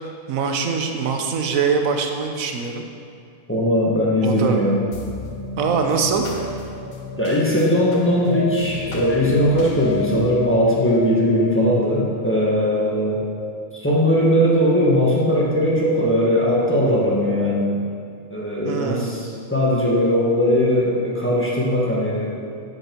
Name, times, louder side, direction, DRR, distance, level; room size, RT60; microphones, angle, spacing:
voice 1, 0.3-2.9 4.2-4.6 5.6-6.3 18.6-19.3, right 5 dB, 90° right, 4 dB, 1.2 m, -23 dB
voice 2, 3.5-4.8 7.2-13.2 13.7-17.8 18.3-22.4, equal, 10° left, -5 dB, 1.2 m, -19 dB
sound 1, 4.9-13.6, left 4 dB, 80° left, 1.2 m, -31 dB
8.1 x 6.0 x 4.4 m, 2.4 s
omnidirectional pair, 1.4 m